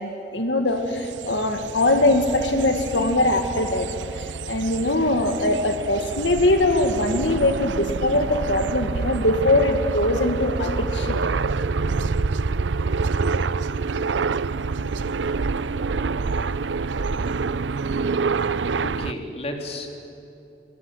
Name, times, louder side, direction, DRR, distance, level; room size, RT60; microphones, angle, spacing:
voice 1, 0.0-3.9 4.1-11.3, left 1 dB, 90° left, 6 dB, 2.0 m, -22 dB
sound 1, 0.8-19.1, right 4 dB, 85° right, 0.6 m, -27 dB
voice 2, 18.8-19.9, left 1 dB, 35° left, 3 dB, 3.4 m, -32 dB
27.5 x 21.5 x 9.9 m, 2.8 s
head